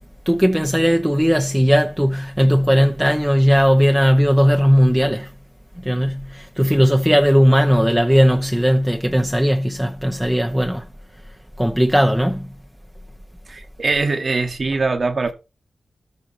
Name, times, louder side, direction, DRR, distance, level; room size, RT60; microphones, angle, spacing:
voice 1, 0.3-5.3 5.8-10.8 11.6-12.5, equal, 5° right, 0.8 m, -17 dB
voice 2, 13.5-15.3, right 3 dB, 50° right, 1.5 m, -22 dB
13.5 x 4.6 x 4.4 m
wide cardioid pair, 95°, 0 cm